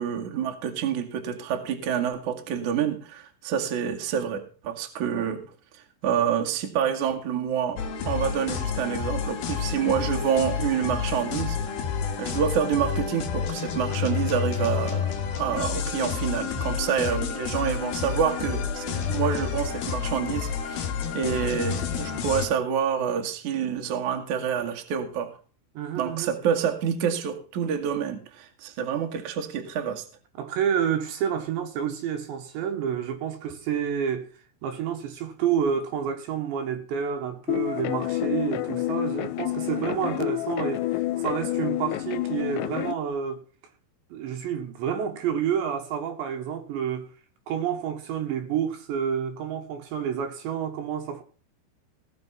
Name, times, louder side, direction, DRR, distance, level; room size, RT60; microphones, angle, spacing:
voice 1, 0.0-5.4 5.7-11.6 12.2-25.4 26.0-30.0, right 8 dB, 50° right, 2.7 m, -28 dB
sound 1, 7.8-22.5, left 7 dB, 60° left, 3.2 m, -29 dB
voice 2, 25.8-26.4 30.4-34.3 34.6-43.4 44.1-47.1 47.5-51.2, right 8 dB, 70° right, 3.6 m, -29 dB
sound 2, 37.5-42.9, left 16 dB, 80° left, 2.6 m, -28 dB
18.5 x 7.2 x 5.7 m
omnidirectional pair, 5.5 m